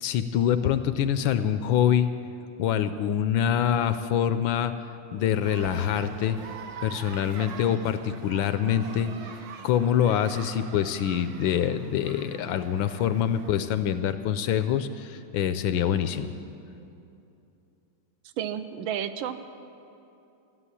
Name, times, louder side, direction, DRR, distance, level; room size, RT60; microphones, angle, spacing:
voice 1, 0.0-2.1 2.6-4.7 5.1-6.4 6.8-9.1 9.6-16.3, left 9 dB, 75° left, 11 dB, 1.2 m, -25 dB
sound 1, 5.4-13.7, right 6 dB, 60° right, 1.1 m, -44 dB
voice 2, 18.4-19.6, right 9 dB, 80° right, 10 dB, 1.4 m, -32 dB
13.5 x 7.8 x 9.8 m, 2.7 s
omnidirectional pair, 2.3 m